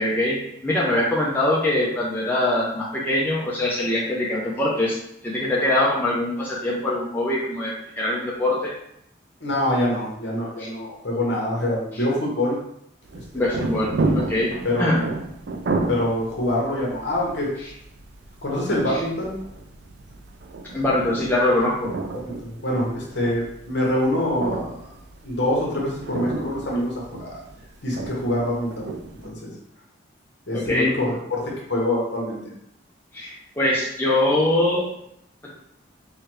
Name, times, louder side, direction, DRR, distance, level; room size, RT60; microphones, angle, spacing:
voice 1, 0.0-5.0 5.2-8.7 10.6-10.7 11.9-12.0 13.3-15.0 18.9-19.0 20.7-21.9 30.5-30.9 33.1-34.8 35.4-35.5, left 1 dB, 10° left, -6 dB, 0.5 m, -23 dB
voice 2, 9.4-12.6 13.3-13.4 14.6-14.9 15.9-17.5 18.4-19.4 22.2-24.7 25.2-27.4 27.8-28.9 29.2-29.5 30.5-32.4, left 1 dB, 60° left, -3 dB, 1.1 m, -25 dB
sound 1, 13.1-29.3, right 2 dB, 55° right, 0.4 m, -32 dB
4.6 x 2.3 x 3.0 m, 0.75 s
head